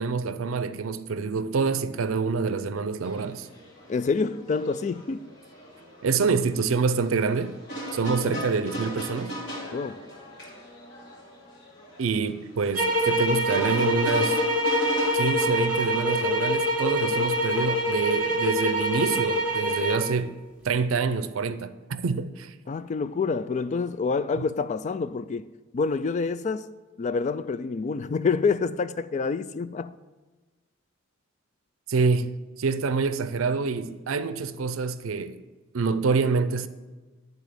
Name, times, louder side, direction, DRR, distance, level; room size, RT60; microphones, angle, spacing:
voice 1, 0.0-3.5 6.0-7.6 7.9-9.4 12.0-14.4 15.1-20.4 20.6-22.5 31.9-32.3 32.6-35.4 35.7-36.7, right 4 dB, 85° right, 0.5 m, -26 dB
sound 1, 3.0-17.9, equal, 60° left, 2.7 m, -39 dB
voice 2, 3.9-5.3 8.0-8.5 9.7-10.0 22.7-30.0, left 4 dB, 35° left, 0.3 m, -28 dB
sound 2, 12.8-20.1, equal, 5° right, 1.8 m, -25 dB
11.5 x 4.0 x 6.7 m
head